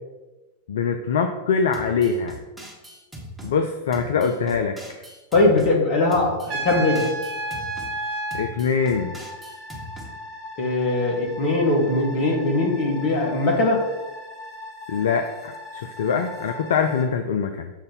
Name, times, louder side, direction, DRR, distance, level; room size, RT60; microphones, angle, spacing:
voice 1, 0.7-2.4 3.4-5.0 8.3-9.1 14.9-17.7, left 6 dB, 60° left, 6 dB, 0.4 m, -23 dB
sound 1, 1.7-3.5 3.9-5.7 6.1-7.9 8.3-10.1, equal, 5° right, 1.3 m, -40 dB
voice 2, 5.3-7.1 10.6-13.8, left 2 dB, 45° left, -1 dB, 1.6 m, -20 dB
Trumpet, 6.5-8.5, right 2 dB, 35° right, 1.4 m, -29 dB
sound 2, 8.8-17.1, left 2 dB, 25° left, 1.4 m, -40 dB
7.0 x 2.6 x 5.4 m, 1.1 s
figure-of-eight pair, 90°, 0 cm